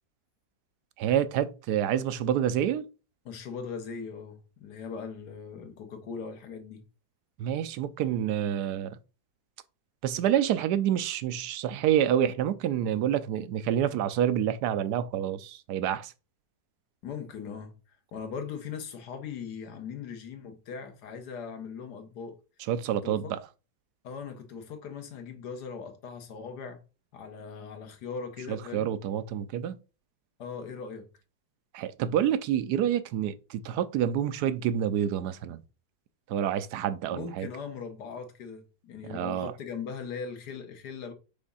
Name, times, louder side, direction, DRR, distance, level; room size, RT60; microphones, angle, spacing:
voice 1, 1.0-2.8 7.4-9.0 10.0-16.1 22.7-23.4 28.5-29.7 31.7-35.6 36.3-37.5 39.1-39.5, right 10 dB, 85° right, 1.1 m, -28 dB
voice 2, 3.2-6.8 17.0-17.7 18.1-22.4 23.0-23.3 24.0-26.8 27.1-28.9 30.4-31.1 37.1-41.1, left 6 dB, 85° left, 1.6 m, -39 dB
5.1 x 3.5 x 5.5 m
omnidirectional pair, 1.7 m